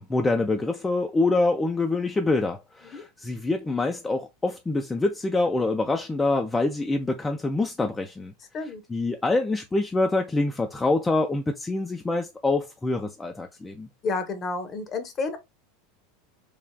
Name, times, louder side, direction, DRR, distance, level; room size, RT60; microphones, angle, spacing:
voice 1, 0.0-8.3 8.9-13.9, left 2 dB, 15° left, 0.4 m, -25 dB
voice 2, 14.0-15.4, left 4 dB, 30° left, 0.7 m, -30 dB
3.3 x 2.3 x 2.2 m
figure-of-eight pair, 80°, 0 cm